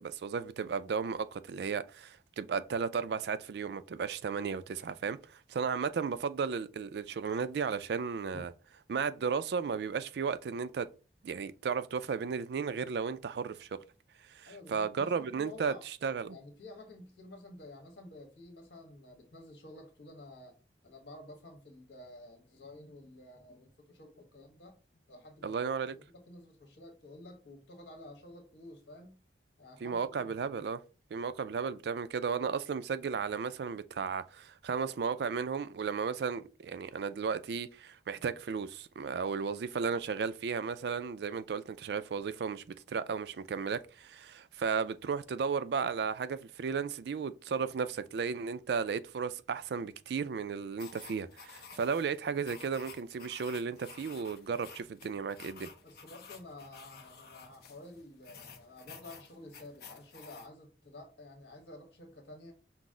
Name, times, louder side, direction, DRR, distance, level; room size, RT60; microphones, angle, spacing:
voice 1, 0.0-8.5 8.9-10.9 11.2-13.7 14.3-15.7 16.0-16.4 25.4-25.9 29.8-30.8 31.1-55.7, right 6 dB, 65° right, 0.3 m, -34 dB
voice 2, 14.4-15.8 16.3-20.6 20.8-24.8 25.1-25.5 25.9-29.2 29.6-30.6 55.8-62.5, left 2 dB, 75° left, 1.4 m, -51 dB
sound 1, 50.8-60.5, left 5 dB, 60° left, 0.7 m, -52 dB
6.0 x 2.0 x 3.7 m
head